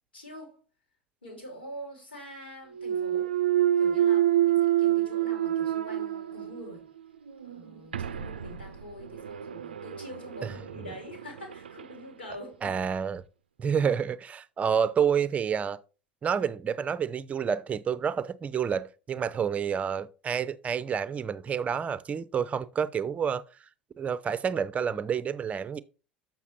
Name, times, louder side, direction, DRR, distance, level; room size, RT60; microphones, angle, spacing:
voice 1, 0.1-0.6 1.2-3.3 3.8-6.9 7.4-12.8, left 1 dB, 80° left, 3.0 m, -45 dB
Thump thud, 2.8-6.8 7.3-11.9, right 11 dB, 75° right, 0.4 m, -28 dB
voice 2, 12.6-13.2 13.6-15.8 16.2-23.4 24.0-25.8, right 7 dB, 25° right, 0.6 m, -29 dB
7.1 x 5.9 x 4.3 m
figure-of-eight pair, 70°, 5 cm